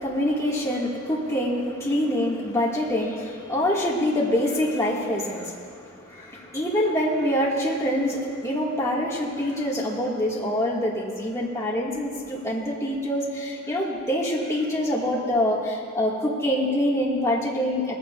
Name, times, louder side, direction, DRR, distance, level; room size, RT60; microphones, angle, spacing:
voice 1, 0.0-17.9, left 1 dB, 15° left, -5 dB, 1.8 m, -25 dB
19.0 x 14.5 x 2.4 m, 2.3 s
head